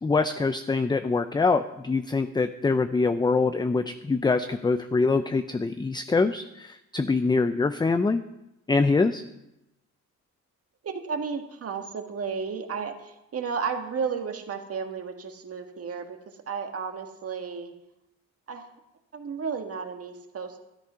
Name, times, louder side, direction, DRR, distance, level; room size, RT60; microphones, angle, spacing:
voice 1, 0.0-8.2 8.7-9.2, left 3 dB, 15° left, 10 dB, 0.5 m, -24 dB
voice 2, 10.8-16.2 16.5-17.7 18.5-18.7 19.1-20.6, right 6 dB, 50° right, 5 dB, 1.8 m, -33 dB
13.0 x 10.5 x 5.6 m, 0.90 s
cardioid pair, 90°, 30 cm